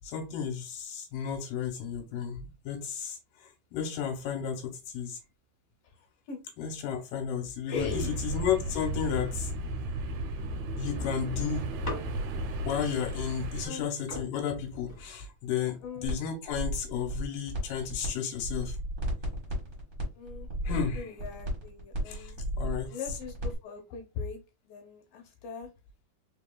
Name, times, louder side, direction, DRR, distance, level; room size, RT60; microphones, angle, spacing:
voice 1, 0.0-5.2 6.6-9.5 10.8-11.7 12.6-18.8 20.6-21.2 22.1-23.0, left 8 dB, 85° left, 2.4 m, -33 dB
voice 2, 7.7-8.2 13.6-13.9 15.8-16.1 20.1-22.4 22.9-24.4 24.6-25.7, left 5 dB, 65° left, 1.5 m, -40 dB
sound 1, 7.7-13.7, right 1 dB, 75° right, 1.9 m, -34 dB
sound 2, 11.8-12.6 13.7-13.8 14.1-15.6 16.3-16.7, left 1 dB, 45° left, 0.9 m, -41 dB
sound 3, 16.0-16.2 16.5-18.1 18.3-23.5, right 1 dB, 45° right, 1.0 m, -34 dB
4.8 x 3.7 x 2.3 m
omnidirectional pair, 3.9 m